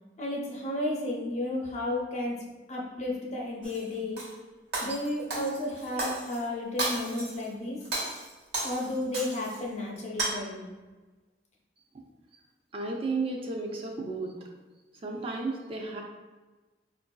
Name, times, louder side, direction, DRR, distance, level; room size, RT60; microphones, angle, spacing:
voice 1, 0.2-2.4 2.7-4.2 4.8-7.8 8.6-10.7, left 1 dB, 40° left, -2 dB, 0.6 m, -32 dB
Shatter, 3.6-4.3 4.7-6.4 6.8-7.4 7.8-9.6 10.0-10.3, right 2 dB, 70° right, 1.0 m, -34 dB
voice 2, 12.7-14.3 15.0-16.0, right 3 dB, 35° right, 1 dB, 0.4 m, -33 dB
4.5 x 2.6 x 2.2 m, 1.2 s
head